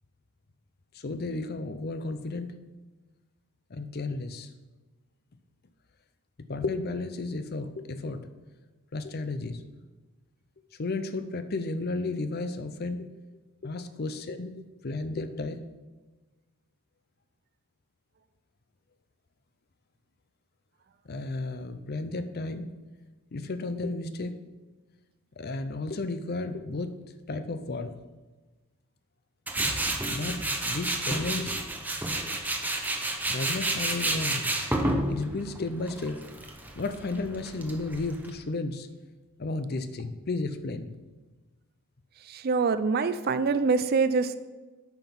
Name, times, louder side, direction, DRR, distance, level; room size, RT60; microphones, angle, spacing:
voice 1, 0.9-2.5 3.7-4.5 6.5-8.3 8.9-9.6 10.8-13.1 13.6-14.5 14.8-15.6 21.1-22.7 23.3-24.4 25.4-27.0 27.3-28.0 30.1-31.6 33.3-34.5 35.1-36.2 36.8-38.9 39.4-40.9, left 3 dB, 45° left, 10 dB, 0.6 m, -33 dB
Tools, 29.5-38.3, right 1 dB, 10° right, 0.8 m, -30 dB
voice 2, 42.2-44.3, right 4 dB, 45° right, 12 dB, 0.4 m, -25 dB
8.9 x 5.9 x 5.4 m, 1.2 s
head